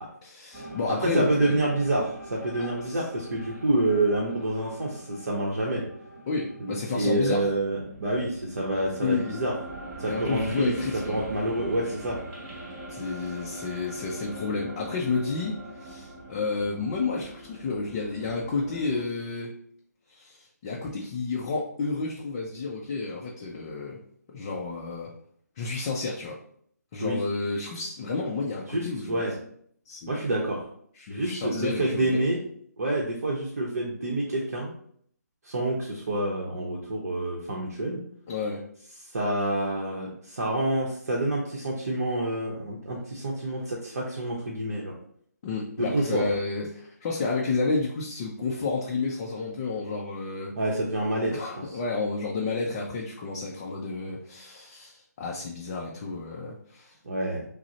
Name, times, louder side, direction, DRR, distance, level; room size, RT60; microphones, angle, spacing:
voice 1, 0.2-1.6 2.6-3.0 6.3-7.5 9.0-9.6 10.1-11.2 12.9-19.5 20.1-24.0 24.3-25.1 25.6-26.4 26.9-29.2 29.9-30.2 30.9-32.2 38.3-38.6 45.4-50.5 51.3-57.0, left 4 dB, 20° left, -3 dB, 0.4 m, -31 dB
sound 1, 0.5-19.0, right 1 dB, 15° right, 0.7 m, -43 dB
voice 2, 0.9-5.8 6.6-9.5 10.0-10.7 11.1-12.2 27.0-27.2 28.7-29.3 30.1-30.7 31.1-32.4 32.8-34.7 35.4-38.0 39.0-44.9 45.8-46.2 50.5-51.4 57.0-57.5, right 1 dB, 60° right, -2 dB, 0.8 m, -28 dB
5.9 x 2.0 x 2.8 m, 0.64 s
figure-of-eight pair, 155°, 9 cm